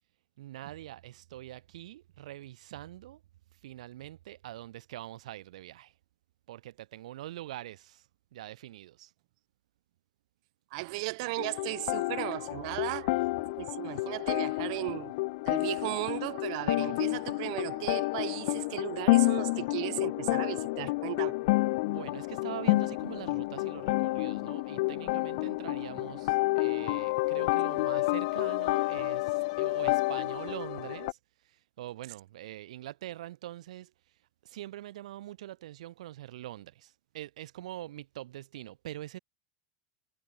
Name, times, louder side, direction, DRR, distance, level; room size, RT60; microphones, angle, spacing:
voice 1, 0.4-3.2 3.5-6.0 6.5-9.1 13.1-13.3 16.8-17.2 17.5-17.9 21.9-39.2, right 14 dB, 90° right, 2.5 m, -44 dB
voice 2, 10.7-13.1 13.6-15.2 15.5-21.4, right 25 dB, 65° right, 1.0 m, -36 dB
sound 1, 11.4-31.1, left 23 dB, 70° left, 0.7 m, -30 dB
supercardioid pair, 135°, 4 cm